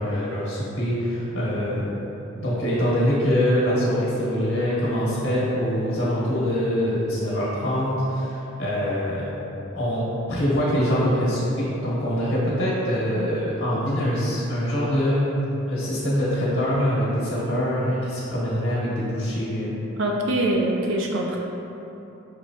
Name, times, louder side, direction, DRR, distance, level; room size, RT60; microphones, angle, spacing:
voice 1, 0.0-1.9 2.4-9.3 9.7-15.3 15.7-19.8, equal, 75° left, -7 dB, 1.4 m, -24 dB
voice 2, 20.0-21.4, right 1 dB, 60° right, 0 dB, 0.4 m, -23 dB
6.3 x 3.0 x 2.7 m, 3.0 s
head